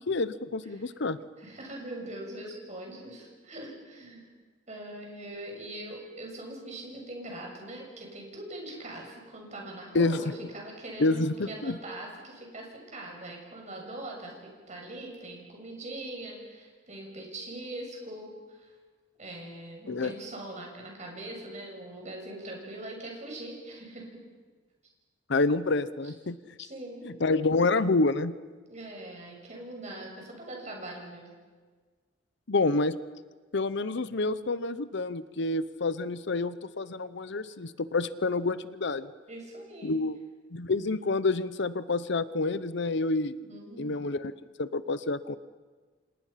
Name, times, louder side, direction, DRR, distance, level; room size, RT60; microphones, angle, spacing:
voice 1, 0.1-1.2 9.9-10.2 11.0-11.8 19.9-20.1 25.3-26.4 27.0-28.3 32.5-33.0 33.5-39.1 39.8-40.2 40.5-43.3 43.8-44.3 44.6-45.4, left 3 dB, 60° left, 15 dB, 0.8 m, -28 dB
voice 2, 1.4-4.3 4.7-18.7 19.2-24.1 26.6-27.1 28.7-31.3 39.3-40.0 43.4-44.0, right 1 dB, 35° right, 0 dB, 7.0 m, -42 dB
29.5 x 26.5 x 5.8 m, 1.4 s
head